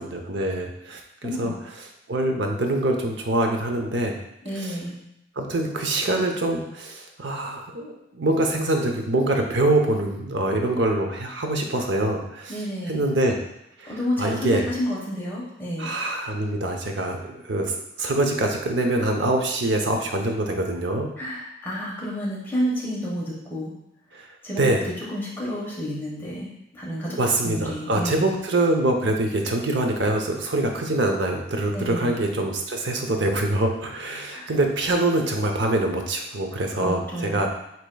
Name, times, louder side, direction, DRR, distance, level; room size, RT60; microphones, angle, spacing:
voice 1, 0.0-1.5 2.1-4.1 4.6-4.8 5.4-12.5 12.9-13.4 13.8-14.7 15.8-21.1 24.1-24.3 24.6-24.8 27.2-37.5, right 2 dB, 65° right, 3 dB, 0.7 m, -24 dB
voice 2, 1.2-1.5 4.4-4.9 12.5-13.0 13.9-15.9 21.2-23.7 24.4-28.3 31.7-32.1 34.3-34.5 36.7-37.4, equal, 10° left, -6 dB, 1.2 m, -30 dB
8.0 x 2.9 x 2.3 m, 0.82 s
head